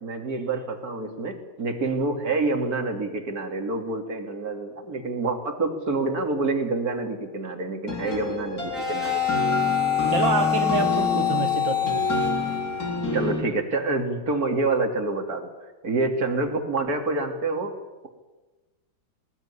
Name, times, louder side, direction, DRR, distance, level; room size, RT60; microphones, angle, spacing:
voice 1, 0.0-9.1 13.1-15.5 15.8-17.8, right 3 dB, 50° right, 4 dB, 3.2 m, -27 dB
sound 1, 7.9-13.4, left 1 dB, 50° left, 4.3 m, -29 dB
sound 2, 8.0-13.1, left 10 dB, ahead, 7.8 m, -26 dB
voice 2, 10.1-12.0, right 5 dB, 80° right, 5 dB, 2.4 m, -27 dB
20.5 x 19.0 x 9.9 m, 1.2 s
omnidirectional pair, 2.0 m